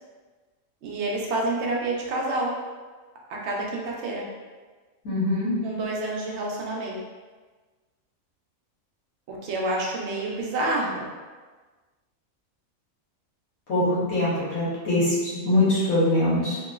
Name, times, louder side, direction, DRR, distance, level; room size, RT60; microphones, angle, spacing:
voice 1, 0.8-2.5 3.3-4.2 5.6-7.0 9.3-11.1, right 2 dB, 60° right, -2 dB, 0.8 m, -28 dB
voice 2, 5.0-5.5 13.7-16.6, left 1 dB, 90° left, -9 dB, 1.5 m, -23 dB
3.0 x 2.8 x 2.3 m, 1.4 s
omnidirectional pair, 1.5 m